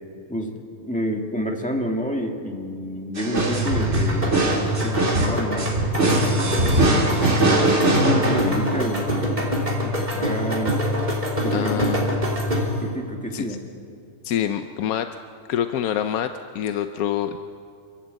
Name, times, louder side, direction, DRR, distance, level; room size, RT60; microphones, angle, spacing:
voice 1, 0.3-5.7 6.0-6.8 7.4-10.8 11.4-11.9 12.8-13.6, equal, 5° left, 1 dB, 1.8 m, -30 dB
sound 1, 3.2-9.0, right 1 dB, 50° right, 2.5 m, -22 dB
sound 2, 3.4-12.9, equal, 30° right, 3.4 m, -25 dB
voice 2, 11.5-12.4 13.3-13.6 14.2-15.1 15.5-17.4, left 10 dB, 85° left, 8 dB, 1.1 m, -26 dB
29.0 x 11.5 x 8.0 m, 2.4 s
omnidirectional pair, 1.5 m